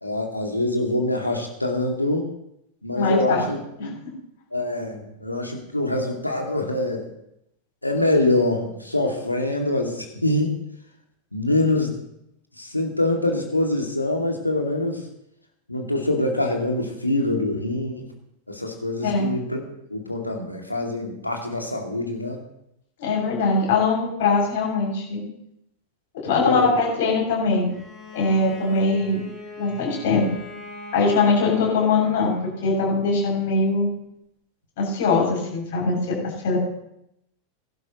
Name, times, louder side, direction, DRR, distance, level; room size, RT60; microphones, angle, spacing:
voice 1, 0.0-2.3 2.8-4.0 4.5-7.1 7.8-10.6 11.3-11.9 12.6-15.0 15.7-18.0 18.5-19.6 19.9-22.4 26.3-26.7, left 2 dB, 85° left, 1 dB, 2.3 m, -24 dB
voice 2, 2.9-3.5 3.8-3.9 19.0-19.3 23.0-25.2 26.1-27.7 28.1-29.2 29.6-30.3 30.9-33.9 34.8-36.2 36.4-36.6, left 3 dB, 55° left, -2 dB, 6.9 m, -21 dB
Bowed string instrument, 27.7-32.8, left 1 dB, ahead, 6.2 m, -40 dB
21.5 x 12.0 x 3.0 m, 0.79 s
figure-of-eight pair, 90°, 0 cm